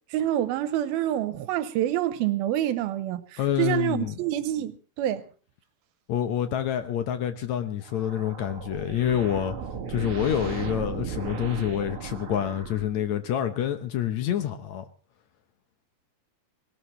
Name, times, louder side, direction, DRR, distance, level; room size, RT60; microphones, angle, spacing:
voice 1, 0.1-5.2, right 12 dB, 80° right, 2.7 m, -27 dB
voice 2, 3.4-4.2 6.1-9.6 9.9-14.9, left 10 dB, 70° left, 1.8 m, -27 dB
sound 1, 7.8-13.3, right 6 dB, 45° right, 2.0 m, -36 dB
19.5 x 18.5 x 3.2 m
omnidirectional pair, 4.2 m